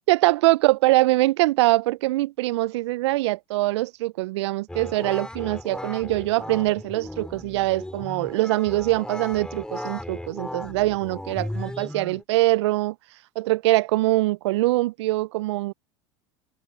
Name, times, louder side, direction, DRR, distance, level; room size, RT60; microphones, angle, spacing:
voice 1, 0.1-12.9 13.4-15.7, right 19 dB, 75° right, 0.5 m, -23 dB
sound 1, 4.7-12.2, left 1 dB, 5° left, 5.7 m, -36 dB
hypercardioid pair, 90°, 15 cm